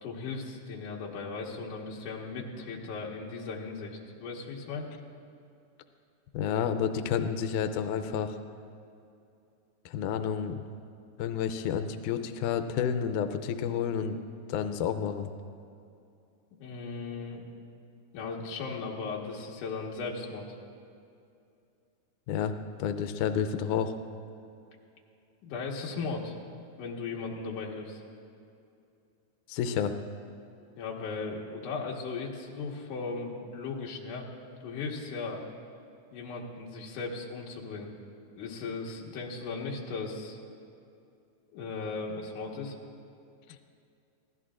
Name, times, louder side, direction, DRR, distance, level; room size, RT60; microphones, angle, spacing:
voice 1, 0.0-4.9 16.6-17.4 18.1-20.4 25.4-26.4 26.8-28.0 30.8-34.3 34.6-35.4 36.1-37.9 38.4-40.4 41.5-42.8, left 4 dB, 65° left, -2 dB, 2.8 m, -37 dB
voice 2, 6.3-8.4 9.9-10.7 11.2-14.2 14.5-15.3 22.3-22.5 22.8-23.9 29.5-29.9, left 8 dB, 90° left, 8 dB, 1.8 m, -30 dB
24.5 x 16.0 x 2.5 m, 2.6 s
omnidirectional pair, 4.2 m